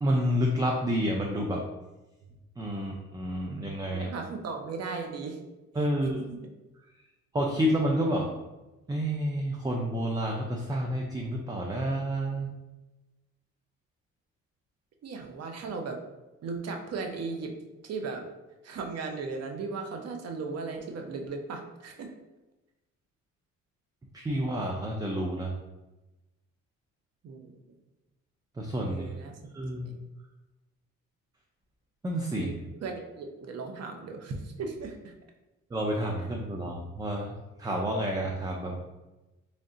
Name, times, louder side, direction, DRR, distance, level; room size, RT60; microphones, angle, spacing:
voice 1, 0.0-1.6 2.6-4.1 5.8-6.2 7.3-8.3 8.9-12.5 24.1-25.5 28.6-29.1 29.5-29.9 32.0-32.5 35.7-37.3 37.6-38.8, equal, 15° right, 0 dB, 0.4 m, -29 dB
voice 2, 3.9-5.4 6.2-6.4 15.0-16.0 16.4-17.5 17.8-18.3 18.6-22.1 27.2-27.5 28.9-29.4 29.8-30.0 32.4-35.1, right 4 dB, 55° right, 3 dB, 0.7 m, -37 dB
3.2 x 2.7 x 3.7 m, 1.1 s
cardioid pair, 90°, 30 cm